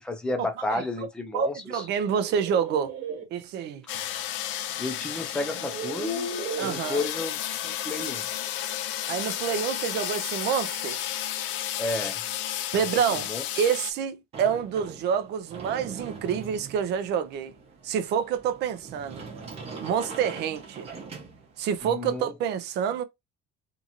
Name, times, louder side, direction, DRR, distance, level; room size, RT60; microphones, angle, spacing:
voice 1, 0.0-1.9 4.8-6.3 6.6-8.3 11.8-12.2 12.7-12.9 13.2-13.4 21.8-22.3, left 2 dB, 5° left, 0.5 m, -32 dB
voice 2, 1.3-2.9 3.3-3.9 6.6-7.1 9.1-11.0 12.7-17.5 17.8-19.2 19.8-20.9 21.6-23.0, right 7 dB, 55° right, 0.6 m, -28 dB
sound 1, 1.9-3.2 4.7-4.8 5.5-6.9, right 2 dB, 75° right, 1.4 m, -35 dB
sound 2, 3.9-13.9, left 12 dB, 65° left, 0.4 m, -32 dB
Sliding door, 14.3-21.8, right 4 dB, 30° right, 0.8 m, -42 dB
2.8 x 2.5 x 2.7 m
cardioid pair, 175°, 21 cm